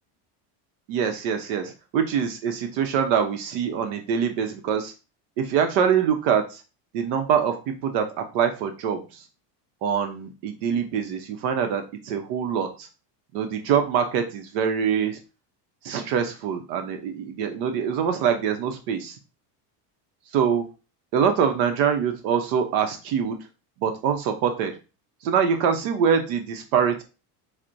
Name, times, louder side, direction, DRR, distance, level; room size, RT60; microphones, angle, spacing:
voice 1, 0.9-4.9 5.4-6.6 6.9-7.5 7.8-8.1 8.3-9.2 9.8-12.9 13.3-15.2 15.8-19.2 20.3-20.6 21.1-23.4 23.8-24.7 25.2-27.0, right 7 dB, 75° right, 6 dB, 0.8 m, -24 dB
5.8 x 2.1 x 2.6 m, 0.31 s
cardioid pair, 135°, 48 cm